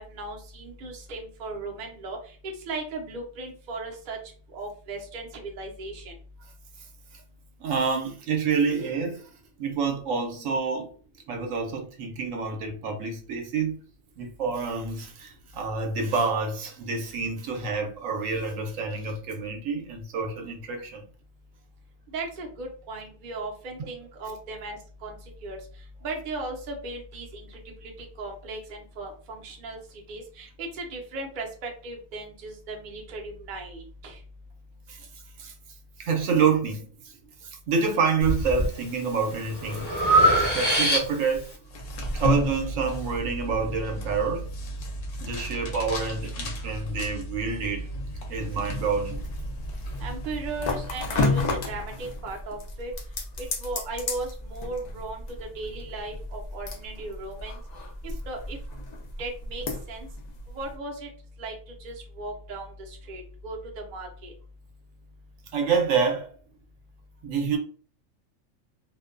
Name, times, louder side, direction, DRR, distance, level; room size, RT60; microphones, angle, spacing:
voice 1, 0.0-4.2 4.5-6.1 22.1-25.2 25.4-25.6 26.0-29.8 30.1-34.2 50.0-52.9 53.4-57.6 58.0-58.6 59.2-60.1 60.5-61.1 61.4-61.5 61.8-64.3, right 2 dB, 50° right, 0.6 m, -37 dB
voice 2, 7.6-9.2 9.6-10.9 11.3-13.8 14.2-21.1 34.9-35.0 35.4-35.5 36.0-36.9 37.4-39.9 40.4-41.5 42.2-44.5 45.2-47.9 48.3-49.2 65.5-66.3 67.2-67.6, right 5 dB, 75° right, 1.0 m, -27 dB
Breathing, 38.2-38.7 39.2-41.4, right 1 dB, 25° left, 0.6 m, -22 dB
sound 1, 41.6-52.2, left 2 dB, 70° left, 0.9 m, -31 dB
sound 2, 49.1-60.8, left 3 dB, 90° left, 0.3 m, -36 dB
2.5 x 2.2 x 2.4 m
omnidirectional pair, 1.4 m